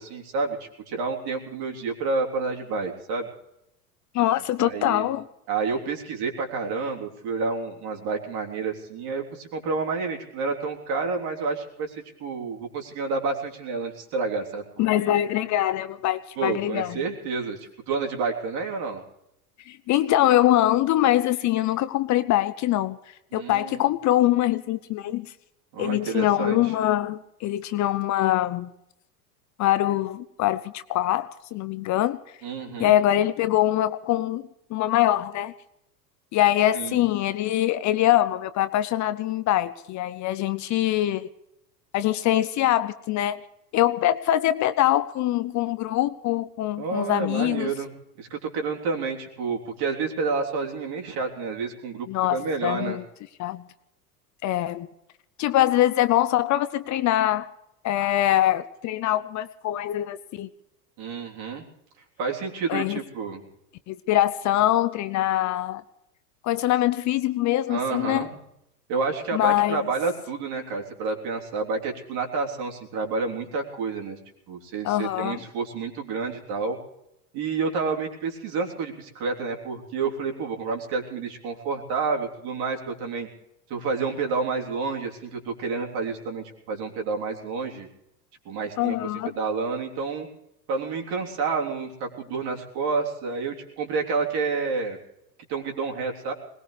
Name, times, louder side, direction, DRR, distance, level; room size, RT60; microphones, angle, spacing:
voice 1, 0.0-3.3 4.3-5.1 5.5-12.0 12.2-15.2 16.4-19.0 23.3-23.8 25.7-26.7 32.4-32.9 36.7-37.0 46.8-47.9 48.2-53.0 61.0-61.6 62.2-63.4 67.7-68.4 68.9-74.2 74.5-76.8 77.3-83.3 83.7-87.9 88.5-89.0 89.4-90.3 90.7-95.0 95.5-96.3, right 4 dB, 50° right, 2 dB, 3.6 m, -29 dB
voice 2, 4.1-5.2 14.8-17.0 19.7-25.3 25.8-28.7 29.6-32.2 32.8-34.4 34.7-35.5 36.3-41.3 41.9-43.5 43.7-47.7 52.1-53.0 53.4-53.6 54.4-54.9 55.4-57.5 57.8-60.5 62.7-63.0 63.9-65.8 66.4-68.3 69.3-69.9 74.8-75.4 88.8-89.3, left 13 dB, 35° left, 13 dB, 0.7 m, -23 dB
21.5 x 19.5 x 3.3 m, 0.83 s
hypercardioid pair, 90°, 48 cm